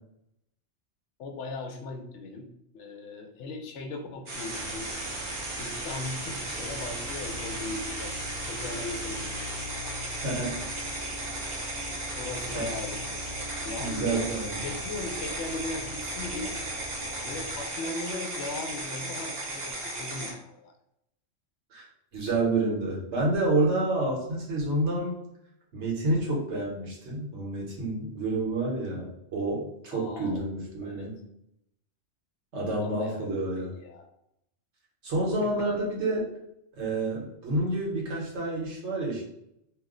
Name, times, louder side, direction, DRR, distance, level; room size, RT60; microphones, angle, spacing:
voice 1, 1.2-2.5 2.7-4.9 5.6-8.1 8.5-9.4 12.1-13.3 13.6-14.2 14.6-16.6 17.2-20.7 29.9-30.4 30.8-31.1 32.8-33.3 33.6-34.1 35.4-35.5, left 3 dB, 75° left, 4 dB, 0.9 m, -38 dB
sound 1, 4.3-20.3, right 2 dB, 45° right, 0.7 m, -35 dB
sound 2, 4.6-17.6, left 1 dB, 50° left, 1.0 m, -43 dB
voice 2, 10.2-10.6 12.5-12.6 13.8-14.7 21.7-21.8 22.1-25.2 25.7-31.2 32.5-33.7 35.0-36.3 36.8-39.2, right 2 dB, 70° right, -2 dB, 1.2 m, -29 dB
2.7 x 2.0 x 3.6 m, 0.79 s
omnidirectional pair, 1.2 m